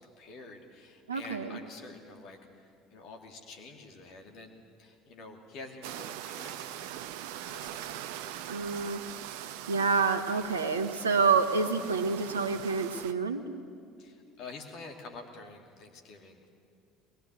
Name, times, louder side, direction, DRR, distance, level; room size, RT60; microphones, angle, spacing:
voice 1, 0.0-4.5 4.8-6.9 7.3-8.9 14.0-16.5, left 3 dB, 55° left, 3 dB, 2.7 m, -48 dB
voice 2, 1.1-1.6 8.5-9.0 9.4-13.4, right 4 dB, 85° right, 7 dB, 1.2 m, -28 dB
sound 1, 5.8-13.1, right 11 dB, 65° right, 0.7 m, -42 dB
22.5 x 21.0 x 8.0 m, 2.3 s
figure-of-eight pair, 60°, 0 cm